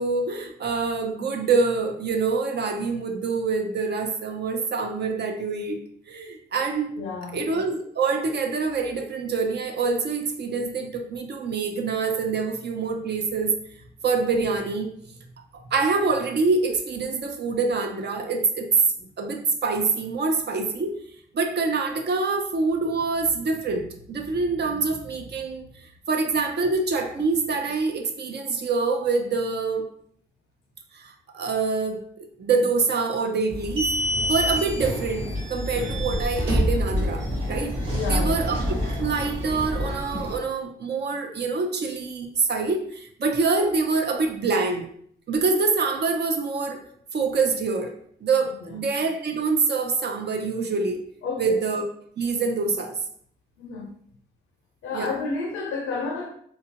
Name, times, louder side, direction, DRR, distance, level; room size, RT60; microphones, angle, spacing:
voice 1, 0.0-5.8 6.1-6.9 7.3-13.5 14.0-14.9 15.5-18.7 19.2-21.0 21.3-29.9 30.9-33.9 34.3-37.8 38.1-38.6 39.0-44.9 45.3-46.8 47.1-47.9 48.2-51.0 51.4-51.9 52.2-53.0 54.9-55.2, right 4 dB, 55° right, 4 dB, 0.5 m, -25 dB
voice 2, 7.0-7.5 37.9-38.5 48.6-48.8 51.2-51.6 53.6-53.9 54.8-56.3, left 4 dB, 85° left, 1 dB, 0.5 m, -31 dB
sound 1, 33.5-40.4, equal, 90° right, 1.4 m, -27 dB
2.8 x 2.2 x 2.8 m, 0.63 s
supercardioid pair, 55°, 21 cm